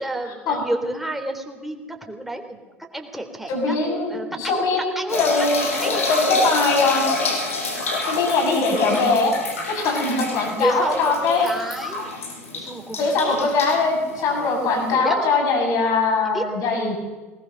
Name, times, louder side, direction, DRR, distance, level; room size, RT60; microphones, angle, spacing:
voice 1, 0.0-2.6 2.9-5.3 5.8-6.1 10.6-12.1 12.5-13.5 14.2-14.6 14.9-15.2 16.3-16.4, right 1 dB, 5° right, 3 dB, 3.7 m, -30 dB
voice 2, 3.5-5.6 6.1-7.0 8.0-9.4 9.7-11.5 13.0-17.0, left 3 dB, 55° left, 2 dB, 7.3 m, -21 dB
sound 1, 5.1-14.9, left 2 dB, 85° left, 5.9 m, -28 dB
21.5 x 19.5 x 6.7 m, 1.3 s
hypercardioid pair, 75°, 7 cm